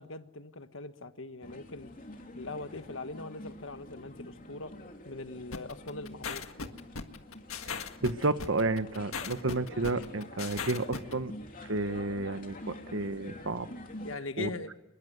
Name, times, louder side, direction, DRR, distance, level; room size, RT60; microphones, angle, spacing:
voice 1, 0.0-1.9 2.3-4.7 5.0-6.5 14.0-14.7, left 3 dB, 65° left, 10 dB, 1.4 m, -41 dB
sound 1, 1.4-14.2, left 1 dB, 40° left, 3.1 m, -47 dB
sound 2, 5.5-11.1, left 5 dB, 85° left, 1.7 m, -38 dB
voice 2, 7.6-11.3 11.7-13.7 14.4-14.5, right 2 dB, 65° right, 11 dB, 1.3 m, -31 dB
26.0 x 21.5 x 9.4 m, 1.0 s
head